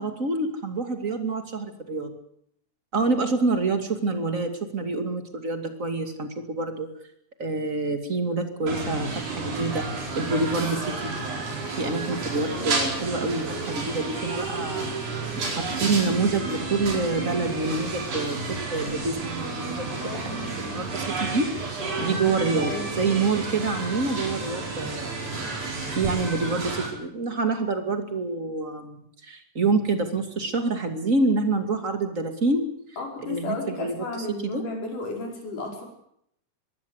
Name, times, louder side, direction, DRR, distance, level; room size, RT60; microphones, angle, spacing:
voice 1, 0.0-2.1 2.9-6.9 7.4-11.1 11.7-14.9 15.3-25.1 25.9-32.7 33.2-34.6, right 3 dB, 25° right, 7 dB, 2.2 m, -27 dB
sound 1, 8.7-26.9, right 3 dB, 55° right, 6.0 m, -31 dB
voice 2, 20.0-20.6 22.0-22.9 33.0-35.8, left 2 dB, 60° left, 1 dB, 6.9 m, -34 dB
22.5 x 16.5 x 8.2 m, 0.71 s
omnidirectional pair, 4.1 m